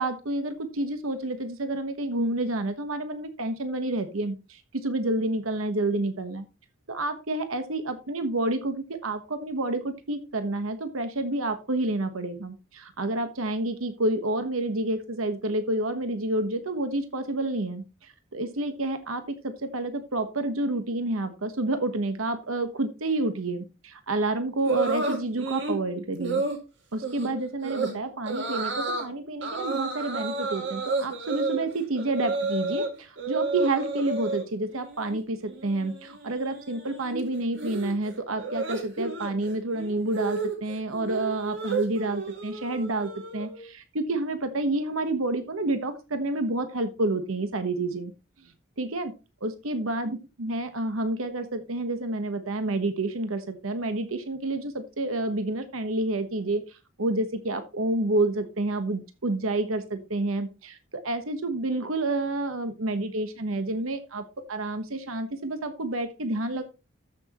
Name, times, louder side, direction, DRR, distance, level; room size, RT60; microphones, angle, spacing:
voice 1, 0.0-6.5 6.9-26.4 26.9-48.1 48.8-49.1 49.4-56.6 57.0-66.7, right 2 dB, 90° right, 9 dB, 1.1 m, -29 dB
sound 1, 24.7-25.8 26.2-26.6 27.0-27.3 27.6-27.9 28.3-29.1 29.4-32.9 33.2-34.4 34.8-35.2 35.4-43.6, right 3 dB, 60° right, 2.2 m, -31 dB
13.5 x 6.2 x 3.0 m, 0.29 s
head